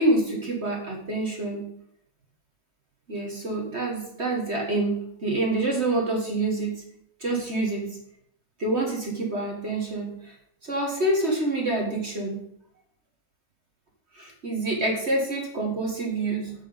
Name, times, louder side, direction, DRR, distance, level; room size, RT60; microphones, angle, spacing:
voice 1, 0.0-1.7 3.1-6.8 7.2-8.0 8.6-10.3 10.6-12.4 14.1-16.5, right 2 dB, 35° right, 0 dB, 1.5 m, -27 dB
7.9 x 6.0 x 5.1 m, 0.72 s
omnidirectional pair, 2.3 m